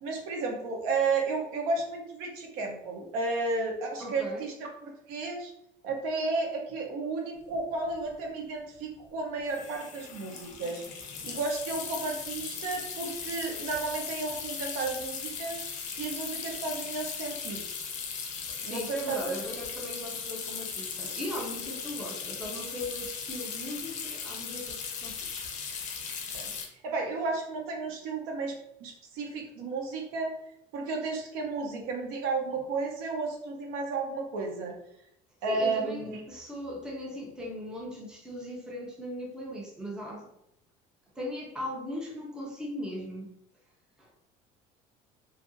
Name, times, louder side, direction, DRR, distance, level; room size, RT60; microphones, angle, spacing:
voice 1, 0.0-5.5 5.8-10.8 11.2-17.6 18.6-19.4 26.3-26.5 26.8-28.5 28.8-30.4 30.7-34.7 35.4-36.2, right 3 dB, 75° right, 2 dB, 0.7 m, -33 dB
voice 2, 4.0-4.5 18.5-25.5 35.5-40.3 41.1-43.3 44.0-44.1, left 1 dB, 5° right, -2 dB, 0.4 m, -39 dB
sound 1, 7.6-7.7 7.8-8.1 9.5-26.7, left 6 dB, 50° left, 0.5 m, -38 dB
2.6 x 2.4 x 2.6 m, 0.78 s
cardioid pair, 165°, 16 cm